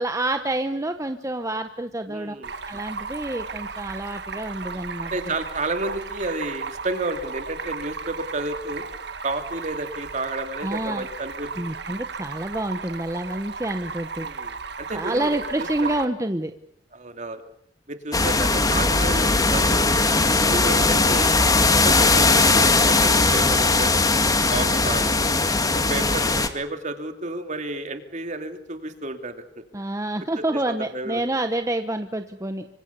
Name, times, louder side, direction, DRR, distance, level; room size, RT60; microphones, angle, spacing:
voice 1, 0.0-2.3 2.6-5.1 10.6-11.0 11.6-14.3 14.9-16.5 29.7-32.6, right 1 dB, 15° right, 7 dB, 1.1 m, -28 dB
voice 2, 2.1-2.5 5.0-8.8 9.2-11.5 14.2-15.9 16.9-17.4 17.9-19.9 20.5-21.3 21.6-24.1 24.5-25.4 25.7-29.6 30.4-31.2, right 2 dB, 40° right, 7 dB, 2.8 m, -31 dB
Stream, 2.4-16.0, right 5 dB, 65° right, 1.8 m, -35 dB
sound 1, 18.1-26.5, left 3 dB, 20° left, 2.0 m, -19 dB
26.5 x 25.0 x 7.0 m, 0.66 s
head